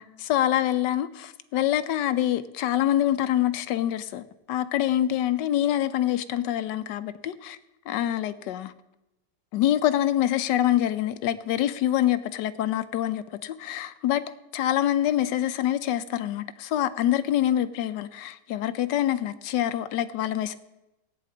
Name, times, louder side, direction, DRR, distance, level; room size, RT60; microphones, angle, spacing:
voice 1, 0.3-7.6 7.9-8.7 9.5-14.2 14.5-20.6, left 12 dB, 90° left, 1.3 m, -25 dB
17.5 x 9.4 x 3.8 m
omnidirectional pair, 1.8 m